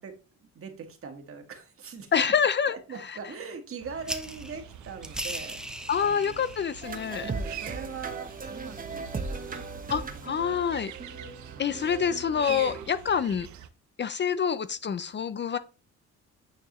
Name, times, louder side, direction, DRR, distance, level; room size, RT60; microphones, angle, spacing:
voice 1, 0.0-2.1 2.7-6.4 7.2-10.5 11.5-11.7, right 5 dB, 45° right, 1.7 m, -42 dB
voice 2, 2.1-2.8 5.9-7.3 9.9-10.9 11.6-13.5 14.0-15.6, left 7 dB, 35° left, 0.5 m, -26 dB
sound 1, 3.8-13.7, right 10 dB, 75° right, 0.7 m, -45 dB
sound 2, 4.0-10.2, right 1 dB, ahead, 0.8 m, -42 dB
sound 3, 6.8-12.9, right 4 dB, 30° right, 1.0 m, -38 dB
9.1 x 4.6 x 3.0 m
cardioid pair, 90°, 30 cm